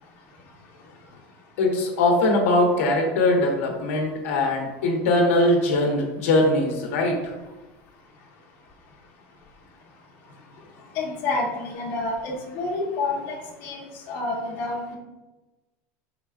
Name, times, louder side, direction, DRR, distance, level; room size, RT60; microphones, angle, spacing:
voice 1, 1.6-7.3, left 2 dB, 90° left, 1 dB, 0.9 m, -21 dB
voice 2, 10.9-13.4 13.6-15.0, left 3 dB, 35° left, -3 dB, 1.0 m, -28 dB
4.7 x 3.8 x 2.4 m, 1.1 s
supercardioid pair, 175°, 7 cm